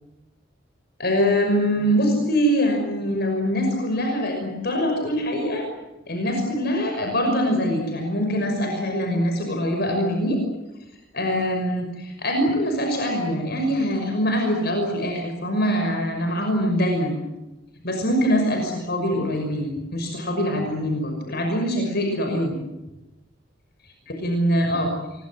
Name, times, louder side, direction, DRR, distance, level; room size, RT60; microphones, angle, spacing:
voice 1, 1.0-5.7 6.1-10.4 11.1-17.2 17.8-22.6 24.2-24.9, equal, 55° left, 3 dB, 5.9 m, -23 dB
27.0 x 23.0 x 7.7 m, 1.0 s
head